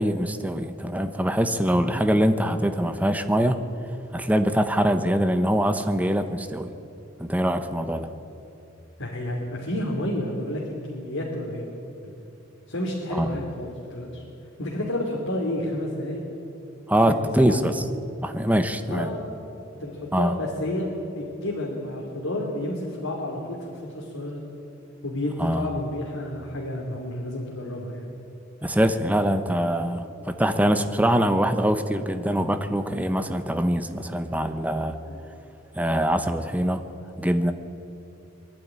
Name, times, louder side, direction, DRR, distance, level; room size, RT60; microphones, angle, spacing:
voice 1, 0.0-3.6 4.1-6.7 7.2-8.1 13.1-13.3 16.9-17.8 18.2-19.1 20.1-20.3 25.4-25.7 28.6-35.0 35.7-36.8 37.2-37.5, equal, 5° right, 8 dB, 1.0 m, -23 dB
voice 2, 9.0-11.7 12.0-12.1 12.7-14.2 14.6-16.2 17.1-17.8 18.9-19.2 19.7-24.5 25.0-28.1 35.1-35.3, left 1 dB, 90° left, -3 dB, 3.0 m, -30 dB
23.0 x 12.0 x 9.8 m, 2.9 s
head